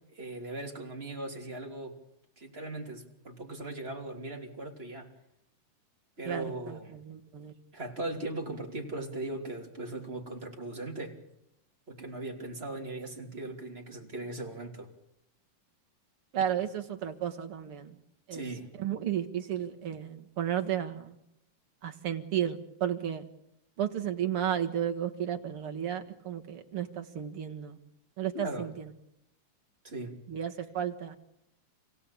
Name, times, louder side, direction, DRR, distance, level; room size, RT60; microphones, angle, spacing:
voice 1, 0.1-2.0 2.4-5.1 6.2-7.0 7.7-11.2 11.9-14.9 18.3-18.7 28.3-28.7 29.8-30.1, right 2 dB, 20° right, 2 dB, 3.0 m, -39 dB
voice 2, 6.3-7.5 16.3-18.0 18.3-18.5 18.8-21.2 21.8-23.2 23.8-27.8 28.2-28.9 30.3-31.2, right 9 dB, 50° right, 4 dB, 2.2 m, -33 dB
28.5 x 17.0 x 8.6 m, 0.83 s
omnidirectional pair, 3.8 m